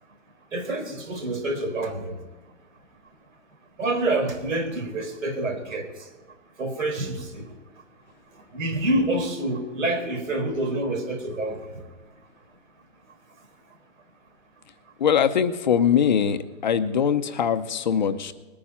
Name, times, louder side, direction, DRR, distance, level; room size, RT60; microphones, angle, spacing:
voice 1, 0.5-2.1 3.8-5.9 6.6-7.5 8.5-11.6, right 2 dB, 85° right, 5 dB, 4.2 m, -27 dB
voice 2, 15.0-18.3, left 8 dB, 35° left, 10 dB, 0.7 m, -22 dB
21.0 x 9.4 x 4.3 m, 1.2 s
hypercardioid pair, 170°, 39 cm